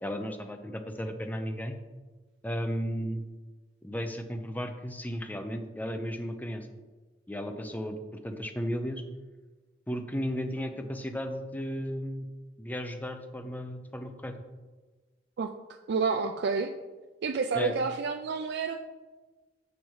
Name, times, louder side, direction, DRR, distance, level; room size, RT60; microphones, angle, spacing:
voice 1, 0.0-1.8 2.4-3.2 3.8-6.7 7.3-9.0 9.9-12.3 12.6-14.3 17.5-17.7, equal, 10° left, 6 dB, 0.6 m, -34 dB
voice 2, 15.4-16.7 17.2-18.8, right 5 dB, 60° right, 4 dB, 0.4 m, -29 dB
7.2 x 6.0 x 4.7 m, 1.3 s
head